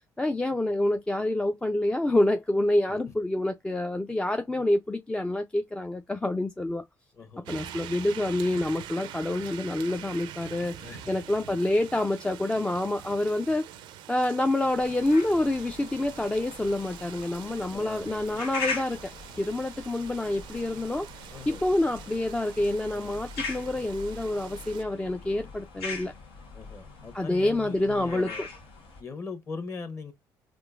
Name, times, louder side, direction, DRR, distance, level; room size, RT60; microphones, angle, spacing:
voice 1, 0.2-6.8 7.5-10.7 11.1-13.7 14.1-19.1 19.4-21.1 21.5-26.1 27.1-28.5, left 1 dB, 10° left, 0.3 m, -27 dB
voice 2, 7.1-7.6 10.8-11.1 17.7-18.5 21.3-21.6 22.9-23.2 26.5-28.5 29.0-30.1, left 4 dB, 35° left, 1.1 m, -41 dB
sound 1, 7.4-24.8, right 11 dB, 80° right, 0.4 m, -45 dB
sound 2, 14.7-29.0, left 3 dB, 90° left, 1.2 m, -41 dB
3.7 x 2.5 x 2.4 m
supercardioid pair, 85°, 8 cm